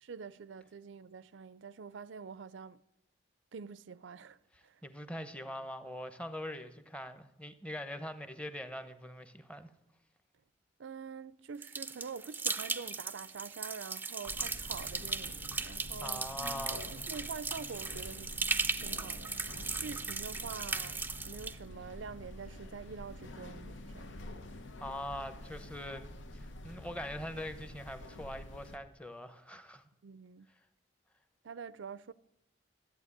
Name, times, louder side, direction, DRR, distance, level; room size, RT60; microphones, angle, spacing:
voice 1, 0.0-2.8 3.5-4.8 10.8-16.3 16.9-19.4 19.8-24.2 30.0-30.5 31.4-32.1, right 5 dB, 80° right, 0.5 m, -46 dB
voice 2, 4.8-9.7 16.0-16.9 24.8-29.9, left 1 dB, 5° left, 0.9 m, -42 dB
sound 1, 11.6-21.5, right 4 dB, 10° right, 0.5 m, -37 dB
sound 2, 14.3-28.8, left 1 dB, 80° left, 1.0 m, -48 dB
13.5 x 8.6 x 9.8 m
head